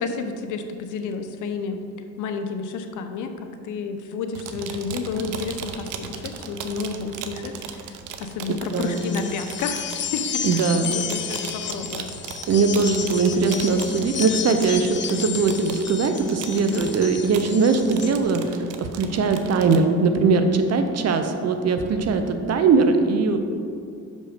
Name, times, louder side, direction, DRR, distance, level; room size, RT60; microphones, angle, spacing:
voice 1, 0.0-1.8 2.2-12.1 16.5-16.8, left 4 dB, 85° left, 7 dB, 0.7 m, -31 dB
sound 1, 4.3-19.8, right 7 dB, 90° right, 0.6 m, -37 dB
voice 2, 8.5-9.1 10.4-10.9 12.5-23.4, right 4 dB, 55° right, 7 dB, 0.7 m, -21 dB
sound 2, 8.8-18.2, left 8 dB, 40° left, 0.5 m, -32 dB
6.2 x 5.3 x 5.1 m, 2.4 s
cardioid pair, 90°, 30 cm